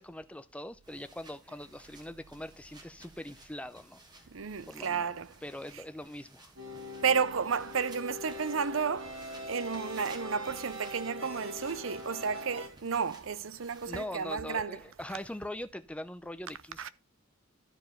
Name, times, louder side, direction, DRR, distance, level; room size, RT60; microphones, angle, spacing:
voice 1, 0.0-4.0 4.7-5.1 5.4-6.5 13.8-16.9, left 1 dB, 5° left, 0.7 m, -42 dB
sound 1, 0.8-14.1, right 2 dB, 20° right, 1.6 m, -57 dB
voice 2, 4.3-5.3 7.0-9.2 9.5-14.8 16.8-16.9, right 6 dB, 70° right, 0.7 m, -32 dB
sound 2, 6.6-12.7, left 1 dB, 90° right, 3.9 m, -43 dB
12.5 x 4.7 x 4.2 m
head